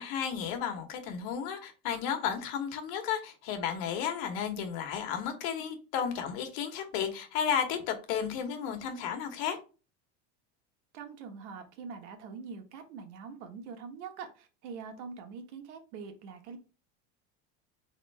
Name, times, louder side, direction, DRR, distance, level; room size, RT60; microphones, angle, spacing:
voice 1, 0.0-9.6, left 8 dB, 65° left, 1.3 m, -33 dB
voice 2, 10.9-16.6, right 5 dB, 80° right, 1.3 m, -44 dB
4.5 x 3.6 x 3.3 m
cardioid pair, 160°, 34 cm